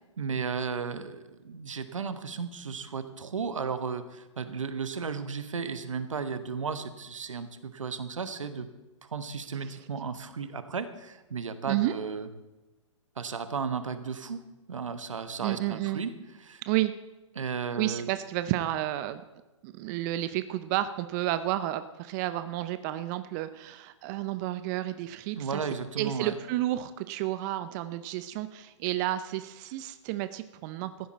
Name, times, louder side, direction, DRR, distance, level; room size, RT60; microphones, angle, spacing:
voice 1, 0.2-8.7 9.0-12.3 13.2-14.4 14.7-16.1 16.4-16.6 17.4-18.1 25.3-26.3, right 5 dB, 80° right, 11 dB, 1.2 m, -34 dB
voice 2, 15.4-16.0 16.7-16.9 17.8-19.2 19.6-25.6 26.0-31.1, right 14 dB, 35° right, 12 dB, 0.6 m, -31 dB
15.0 x 11.0 x 4.2 m, 1.1 s
hypercardioid pair, 120°, 16 cm